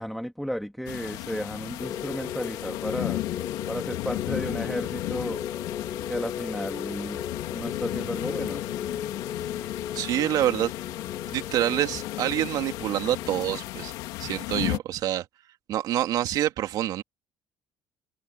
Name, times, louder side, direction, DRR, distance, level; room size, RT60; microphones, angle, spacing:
voice 1, 0.0-3.2 3.7-5.4 6.1-7.2 7.5-8.6, equal, ahead, 2.6 m, -33 dB
sound 1, 0.9-14.8, left 19 dB, 85° left, 3.5 m, -35 dB
sound 2, 1.8-14.6, left 8 dB, 50° left, 6.2 m, -36 dB
voice 2, 9.9-10.7 11.3-13.9 14.2-15.2 15.7-17.0, right 12 dB, 65° right, 2.5 m, -26 dB
supercardioid pair, 95°, 7 cm